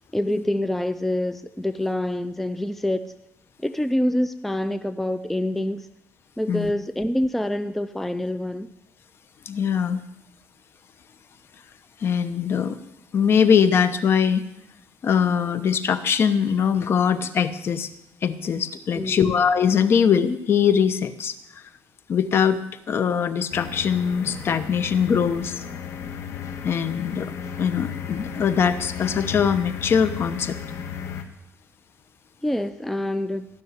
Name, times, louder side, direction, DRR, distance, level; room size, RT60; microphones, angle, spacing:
voice 1, 0.1-3.1 3.6-5.9 6.4-8.7 18.9-19.3 32.4-33.5, left 1 dB, 5° left, 11 dB, 0.5 m, -26 dB
voice 2, 9.5-10.0 12.0-12.8 13.1-14.4 15.0-17.9 18.2-21.3 22.1-22.6 22.9-25.6 26.6-27.3 27.6-30.6, left 7 dB, 45° left, 12 dB, 0.9 m, -22 dB
sound 1, 23.5-31.2, left 7 dB, 60° left, 1.4 m, -34 dB
15.5 x 6.3 x 9.6 m, 0.85 s
cardioid pair, 130°, 6 cm